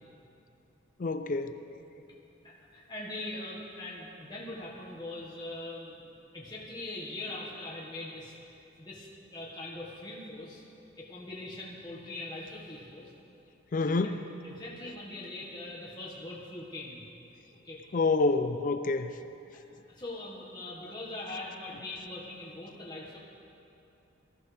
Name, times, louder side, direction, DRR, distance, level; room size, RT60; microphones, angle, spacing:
voice 1, 1.0-1.6 13.7-14.2 17.9-19.1, left 3 dB, 40° left, 10 dB, 0.4 m, -27 dB
voice 2, 2.4-8.3 8.8-10.6 11.0-13.1 13.9-14.1 14.4-17.0 17.5-17.8 19.9-23.2, left 2 dB, 20° left, -5 dB, 1.6 m, -42 dB
19.0 x 13.5 x 3.4 m, 2.8 s
head